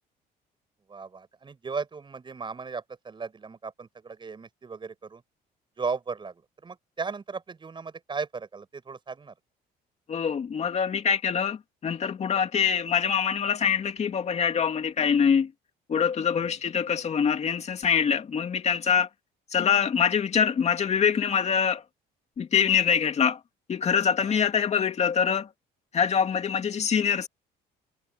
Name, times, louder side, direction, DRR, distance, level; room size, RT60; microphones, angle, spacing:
voice 1, 0.9-5.2 5.8-9.3 12.6-12.7 16.4-16.6 24.2-24.4, right 5 dB, 30° right, 6.8 m, -36 dB
voice 2, 10.1-15.5 15.9-19.1 19.5-21.8 22.4-23.4 23.7-25.5 25.9-27.3, left 7 dB, 40° left, 2.6 m, -24 dB
cardioid pair, 110°, 17 cm